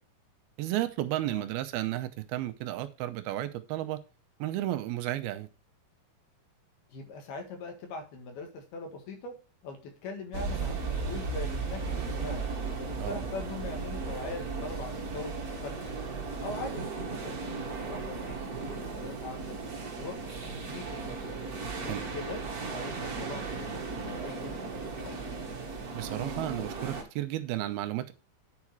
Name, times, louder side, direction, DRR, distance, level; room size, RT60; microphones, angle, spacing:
voice 1, 0.6-4.0 4.4-5.5 13.0-13.2 21.8-22.0 25.9-28.1, right 14 dB, 90° right, 2.6 m, -33 dB
voice 2, 6.9-9.3 9.6-12.4 12.8-16.0 16.4-19.6 20.0-21.4 21.8-22.4 22.7-25.2, left 3 dB, 80° left, 3.7 m, -42 dB
sound 1, 10.3-27.0, right 4 dB, 55° right, 1.0 m, -36 dB
9.7 x 4.9 x 4.6 m
omnidirectional pair, 4.4 m